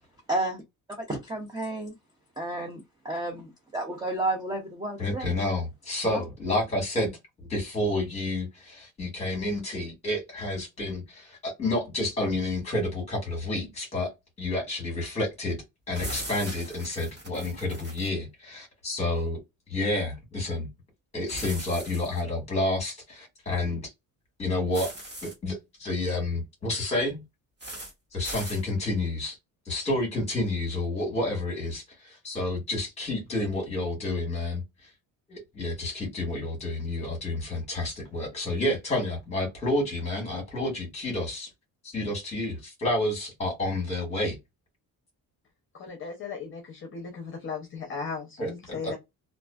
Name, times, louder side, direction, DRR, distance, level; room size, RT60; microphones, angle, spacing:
voice 1, 0.3-0.6 1.0-1.9 2.4-5.3 6.1-6.2, right 2 dB, 15° right, 0.4 m, -31 dB
voice 2, 5.0-7.1 7.4-14.1 14.4-19.4 19.7-20.7 21.1-23.9 24.4-24.9 25.2-27.2 28.1-29.4 29.7-34.6 35.3-41.5 41.8-44.3 48.4-49.1, left 2 dB, 15° left, 1.3 m, -30 dB
sound 1, 15.9-18.1 21.3-22.2 24.7-25.3 27.6-27.9 28.2-28.6, right 1 dB, 30° right, 1.4 m, -39 dB
voice 3, 45.7-49.0, left 5 dB, 35° left, 0.7 m, -37 dB
2.4 x 2.3 x 2.3 m
cardioid pair, 180°, 36 cm